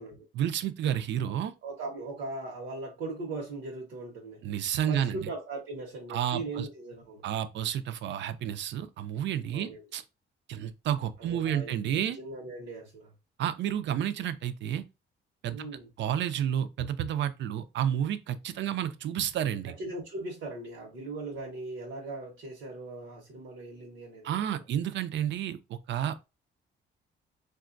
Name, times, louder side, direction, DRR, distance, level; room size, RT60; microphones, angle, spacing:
voice 1, 0.3-1.5 4.4-5.2 6.1-6.7 7.2-10.0 10.5-12.2 13.4-14.9 15.4-15.7 16.0-19.7 24.2-26.3, right 10 dB, 65° right, 0.4 m, -30 dB
voice 2, 1.6-4.4 4.9-7.2 9.5-9.8 11.2-11.8 12.1-13.1 15.5-15.9 19.8-24.6, right 2 dB, 90° right, 0.9 m, -39 dB
3.6 x 2.3 x 2.5 m
cardioid pair, 90°, 20 cm